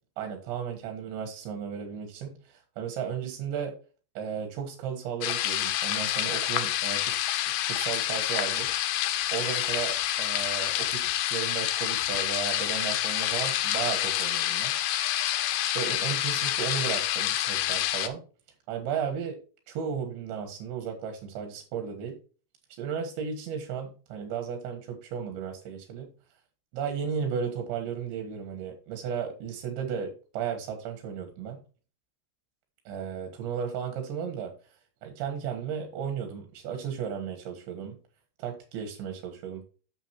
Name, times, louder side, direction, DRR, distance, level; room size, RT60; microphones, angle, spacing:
voice 1, 0.2-3.7 4.2-7.1 7.6-8.7 9.3-14.7 15.6-18.2 18.7-19.4 19.7-22.2 22.7-26.1 26.7-31.6 32.9-34.5 35.0-38.0 38.4-39.6, right 7 dB, 80° right, 5 dB, 3.7 m, -34 dB
sound 1, 5.2-18.1, left 13 dB, 80° left, 2.6 m, -28 dB
9.3 x 7.1 x 2.9 m, 0.36 s
omnidirectional pair, 5.1 m